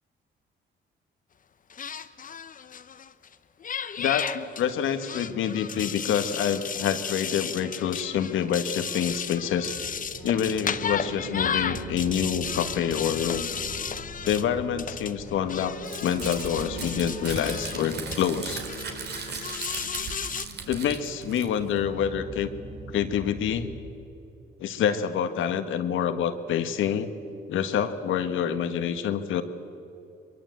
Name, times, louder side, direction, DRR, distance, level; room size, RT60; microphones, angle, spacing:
sound 1, 1.7-3.3 3.6-18.2 18.7-20.5, left 7 dB, 45° left, 1.0 m, -34 dB
voice 1, 4.0-9.7 10.2-13.5 14.2-18.6 20.7-22.5 22.9-23.7 24.6-27.1 27.5-29.4, left 8 dB, 80° left, 9 dB, 1.6 m, -27 dB
sound 2, 9.5-23.9, right 3 dB, 85° right, 4.0 m, -42 dB
Crumpling crinkling, 15.8-21.8, right 5 dB, 55° right, 3.1 m, -37 dB
23.0 x 22.5 x 7.9 m, 2.7 s
cardioid pair, 90°, 20 cm